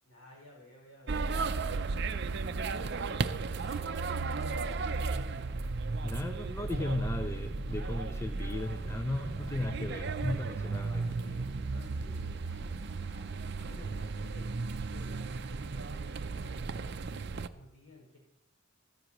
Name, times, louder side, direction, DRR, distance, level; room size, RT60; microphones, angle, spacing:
voice 1, 0.0-5.6 10.6-14.5 14.9-17.2 17.5-18.2, left 1 dB, 80° left, -2 dB, 6.0 m, -55 dB
sound 1, 1.1-17.5, right 4 dB, 50° right, 0.5 m, -35 dB
sound 2, 1.5-14.0, equal, 5° right, 3.4 m, -59 dB
voice 2, 6.0-11.0, left 1 dB, 15° left, 7 dB, 0.4 m, -35 dB
15.0 x 14.0 x 3.1 m, 0.82 s
head